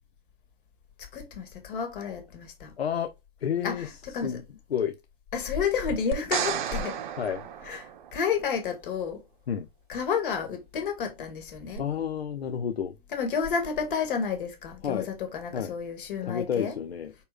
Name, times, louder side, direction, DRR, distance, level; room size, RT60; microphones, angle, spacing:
voice 1, 1.0-2.7 3.6-4.4 5.3-7.0 7.6-9.2 9.9-11.8 13.1-16.8, left 6 dB, 55° left, 2.0 m, -31 dB
voice 2, 2.8-3.1 3.4-3.9 4.2-4.4 4.7-5.0 7.2-7.4 9.5-9.7 11.8-12.9 14.8-15.1 15.5-15.7 16.2-17.1, left 8 dB, 75° left, 0.6 m, -30 dB
sound 1, 6.1-8.4 11.8-11.9, right 9 dB, 50° right, 0.8 m, -32 dB
5.3 x 4.2 x 2.3 m
figure-of-eight pair, 100°, 31 cm